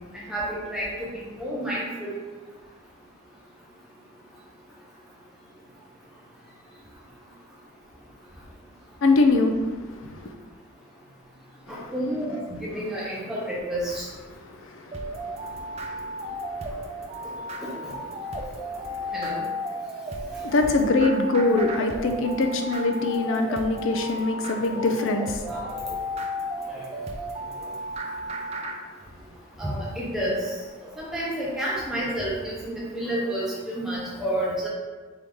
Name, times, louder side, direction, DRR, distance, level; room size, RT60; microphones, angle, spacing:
voice 1, 0.3-2.2 11.7-14.0 17.6-17.7 19.1-19.4 24.7-24.9 25.5-25.7 29.6-30.4 31.0-34.7, right 1 dB, ahead, -7 dB, 0.8 m, -30 dB
voice 2, 9.0-10.3 11.7-11.9 14.3-17.6 18.2-19.1 20.4-25.5, left 3 dB, 60° left, 5 dB, 0.4 m, -25 dB
sound 1, 14.9-28.8, equal, 30° right, 0.3 m, -34 dB
4.7 x 2.7 x 3.5 m, 1.3 s
head